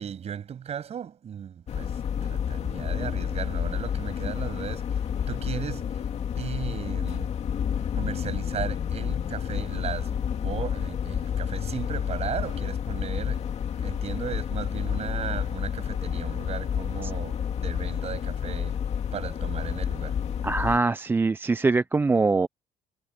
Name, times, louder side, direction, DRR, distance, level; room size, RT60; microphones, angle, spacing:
voice 1, 0.0-6.0 6.4-7.3 8.0-13.5 13.8-18.8 19.1-20.2, right 8 dB, 45° right, 7.0 m, -36 dB
sound 1, 1.7-20.8, left 8 dB, 45° left, 2.4 m, -30 dB
voice 2, 20.4-22.5, right 3 dB, 15° right, 0.3 m, -23 dB
cardioid pair, 155°, 16 cm